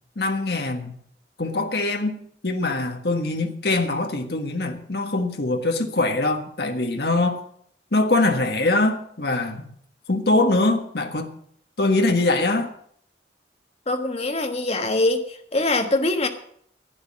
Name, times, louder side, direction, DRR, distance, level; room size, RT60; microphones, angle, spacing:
voice 1, 0.2-0.9 1.4-7.4 7.9-9.7 10.1-11.3 11.8-12.7, left 2 dB, 60° left, 1.5 m, -23 dB
voice 2, 13.9-16.3, left 2 dB, 35° left, 1.4 m, -23 dB
11.5 x 9.1 x 7.4 m
head